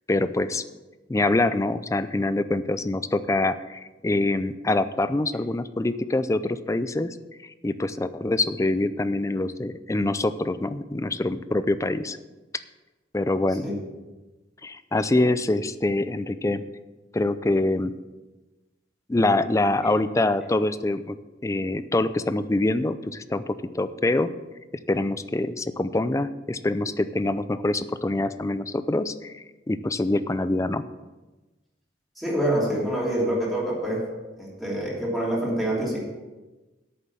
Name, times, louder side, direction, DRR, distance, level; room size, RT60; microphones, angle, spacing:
voice 1, 0.1-0.6 1.1-7.2 7.4-12.2 13.1-13.6 14.6-16.6 17.1-17.9 19.1-21.2 21.4-24.3 24.9-30.8, left 2 dB, 15° left, 13 dB, 0.4 m, -25 dB
voice 2, 32.2-34.0 34.4-36.0, right 1 dB, ahead, -6 dB, 2.9 m, -26 dB
8.7 x 7.1 x 6.9 m, 1.2 s
head